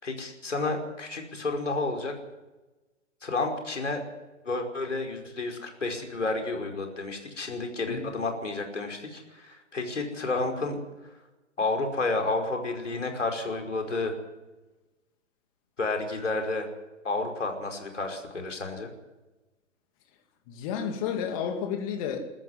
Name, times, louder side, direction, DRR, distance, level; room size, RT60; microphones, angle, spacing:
voice 1, 0.0-2.1 3.2-4.0 4.4-10.8 11.6-14.2 15.8-16.7 17.0-18.9, left 3 dB, 70° left, 5.2 m, -31 dB
voice 2, 20.5-22.3, left 7 dB, 30° left, 2.6 m, -31 dB
22.5 x 13.5 x 9.8 m
figure-of-eight pair, 125°, 38 cm